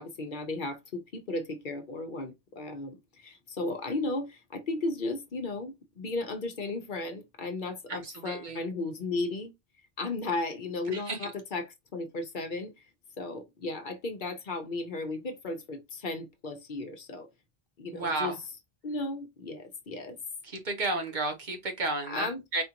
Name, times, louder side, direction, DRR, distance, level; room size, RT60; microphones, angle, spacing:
voice 1, 0.0-9.5 10.0-12.9 13.2-17.3 17.8-18.3 18.8-20.2 22.1-22.4, left 2 dB, 55° left, 0.9 m, -35 dB
voice 2, 7.9-8.6 10.9-11.3 17.9-18.4 20.4-22.6, right 2 dB, 50° right, 1.0 m, -32 dB
4.3 x 2.4 x 2.8 m
omnidirectional pair, 1.0 m